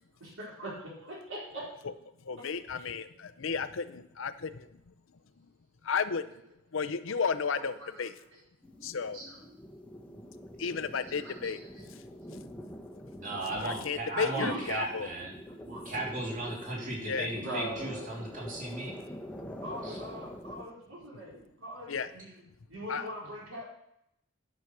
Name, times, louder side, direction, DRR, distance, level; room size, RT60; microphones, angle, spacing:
voice 1, 0.2-1.7 2.4-2.5 2.7-2.9 7.1-8.4 9.1-9.4 10.9-11.9 12.2-12.4 14.2-14.8 15.5-16.1 17.4-18.1 19.6-22.4 22.7-23.6, right 1 dB, 75° right, -3 dB, 4.2 m, -42 dB
voice 2, 2.2-4.9 5.8-6.4 6.7-8.1 8.8-9.2 10.6-11.6 13.6-15.1 17.1-17.3 21.9-22.1 22.9-23.1, left 5 dB, 70° left, 11 dB, 0.6 m, -33 dB
sound 1, 8.6-20.6, equal, 5° left, 1.0 m, -45 dB
voice 3, 13.1-15.3 15.8-18.9 19.8-20.0, right 2 dB, 40° right, -3 dB, 3.3 m, -36 dB
11.0 x 6.3 x 6.0 m, 0.77 s
head